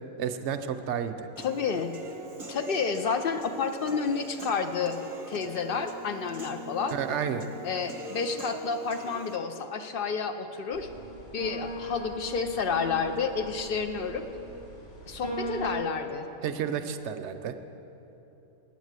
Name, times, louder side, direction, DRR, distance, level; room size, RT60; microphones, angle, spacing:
voice 1, 0.2-1.3 6.9-7.5 16.4-17.5, right 8 dB, 65° right, 9 dB, 0.8 m, -31 dB
voice 2, 1.4-1.9 2.5-5.0 5.3-7.0 7.6-10.9 11.3-14.2 15.1-16.3, left 5 dB, 65° left, 8 dB, 0.5 m, -30 dB
Human voice / Piano, 1.4-9.4, right 2 dB, 30° right, 0.6 m, -42 dB
sound 1, 10.7-15.8, equal, 45° left, 2.2 m, -38 dB
9.2 x 8.1 x 8.1 m, 3.0 s
omnidirectional pair, 1.5 m